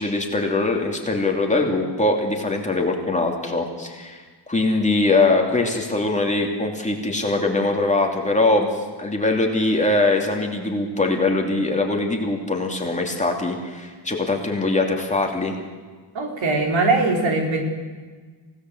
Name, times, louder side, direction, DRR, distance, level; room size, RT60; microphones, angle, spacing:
voice 1, 0.0-15.6, left 2 dB, 15° left, 1 dB, 2.8 m, -22 dB
voice 2, 16.1-17.6, right 3 dB, 75° right, 2 dB, 4.6 m, -21 dB
27.5 x 17.5 x 8.0 m, 1.4 s
wide cardioid pair, 175°, 46 cm